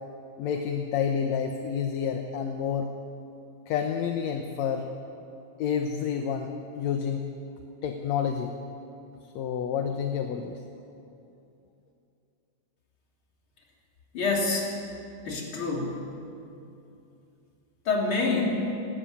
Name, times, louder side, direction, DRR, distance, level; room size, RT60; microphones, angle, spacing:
voice 1, 0.4-2.9 3.7-4.9 5.6-6.5 6.8-7.3 7.8-8.5 9.4-10.6, left 7 dB, 70° left, 4 dB, 2.1 m, -29 dB
voice 2, 14.1-14.7 15.3-15.9 17.9-18.7, left 3 dB, 45° left, -1 dB, 3.7 m, -26 dB
19.0 x 17.5 x 8.5 m, 2.7 s
omnidirectional pair, 3.4 m